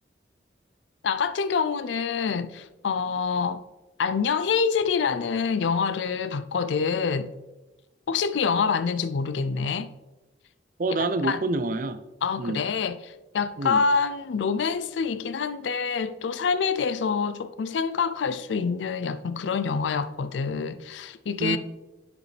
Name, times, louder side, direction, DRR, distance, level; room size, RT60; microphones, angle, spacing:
voice 1, 1.0-3.6 4.0-7.3 8.1-9.9 11.2-11.4 12.2-21.6, left 5 dB, 85° left, 0.4 m, -26 dB
voice 2, 10.8-12.0 12.4-12.6 13.6-13.8 21.4-21.6, right 3 dB, 45° right, 0.5 m, -27 dB
9.3 x 5.1 x 3.3 m
head